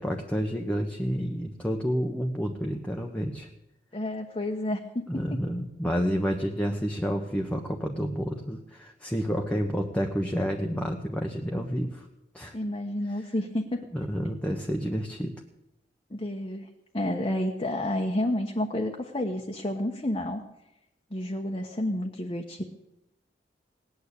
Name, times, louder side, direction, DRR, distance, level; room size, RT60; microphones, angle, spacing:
voice 1, 0.0-3.5 5.1-12.1 12.3-12.5 13.9-15.3, equal, 10° left, 1 dB, 1.2 m, -29 dB
voice 2, 3.9-5.4 12.5-13.8 16.1-16.7 16.9-20.4 21.1-22.6, left 1 dB, 30° left, 1 dB, 1.2 m, -30 dB
18.5 x 9.5 x 8.3 m, 0.89 s
head